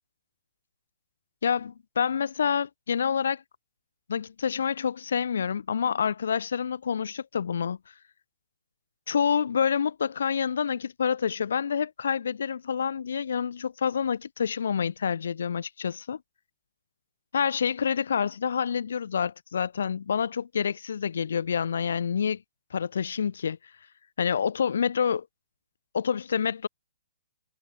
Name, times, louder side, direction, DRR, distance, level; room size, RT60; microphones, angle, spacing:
voice 1, 1.4-3.4 4.1-7.8 9.1-16.2 17.3-22.4 22.7-23.6 24.2-25.3 25.9-26.7, left 7 dB, 70° left, 2.3 m, -27 dB
hypercardioid pair, 135°, 0 cm